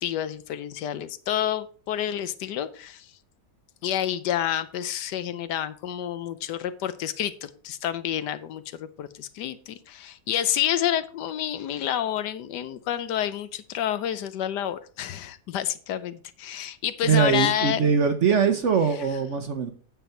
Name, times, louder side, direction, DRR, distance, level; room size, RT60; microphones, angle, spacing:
voice 1, 0.0-3.1 3.8-17.8, left 11 dB, 75° left, 1.3 m, -29 dB
voice 2, 17.0-19.7, right 6 dB, 55° right, 0.9 m, -22 dB
9.1 x 7.0 x 4.4 m
omnidirectional pair, 1.9 m